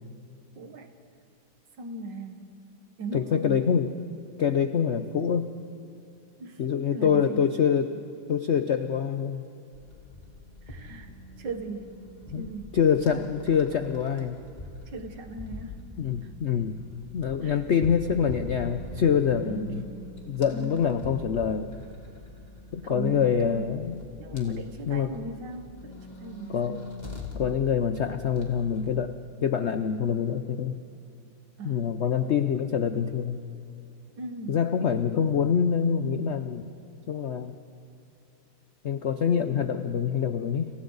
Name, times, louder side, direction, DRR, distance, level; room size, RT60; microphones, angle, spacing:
voice 1, 0.6-0.9 1.8-2.6 3.0-3.8 6.4-6.6 6.9-7.4 10.7-11.1 11.4-12.0 12.3-12.7 14.9-15.8 17.4-17.6 19.5-20.1 20.5-21.1 22.8-23.7 24.2-26.8 31.6-32.0 34.2-34.7, right 3 dB, 65° right, 6 dB, 2.1 m, -38 dB
voice 2, 3.1-3.9 4.4-5.5 6.6-8.0 8.3-9.4 12.3-12.5 12.7-14.4 16.0-16.8 17.1-19.8 20.3-21.7 22.7-24.0 24.3-25.1 26.5-26.8 27.3-29.2 29.4-30.7 31.6-33.4 34.5-36.7 37.1-37.6 38.8-40.7, left 7 dB, 80° left, 9 dB, 0.6 m, -25 dB
sound 1, 9.7-29.0, left 1 dB, 20° left, 2.7 m, -43 dB
29.5 x 28.5 x 4.0 m, 2.6 s
omnidirectional pair, 2.1 m